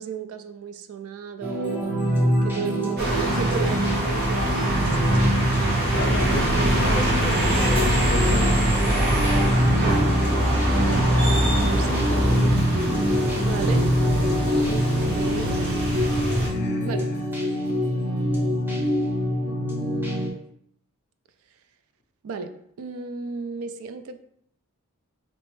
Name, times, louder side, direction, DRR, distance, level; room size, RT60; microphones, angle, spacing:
voice 1, 0.0-2.0 2.4-5.3 6.0-6.9 7.3-7.8 8.8-9.2 9.8-10.3 10.7-11.9 13.4-13.9 14.7-15.8 16.8-17.1 17.7-18.7 19.4-20.4 22.2-22.5 22.8-24.2, right 5 dB, 65° right, 9 dB, 0.3 m, -35 dB
sound 1, 1.4-20.3, equal, 10° right, 0.5 m, -25 dB
sound 2, 3.0-16.5, right 1 dB, 45° right, 0.8 m, -23 dB
voice 2, 5.9-6.4 6.7-8.7 12.9-13.5 16.4-17.2, left 3 dB, 45° left, 0 dB, 0.4 m, -33 dB
3.2 x 3.0 x 3.0 m, 0.70 s
head